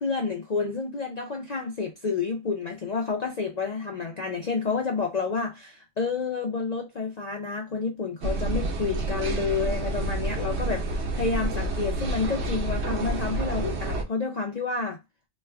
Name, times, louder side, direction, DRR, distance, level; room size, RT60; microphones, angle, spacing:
voice 1, 0.0-15.0, left 4 dB, 75° left, 0.3 m, -29 dB
sound 1, 8.2-14.0, right 2 dB, 65° right, 0.9 m, -29 dB
3.1 x 2.2 x 3.3 m
omnidirectional pair, 1.4 m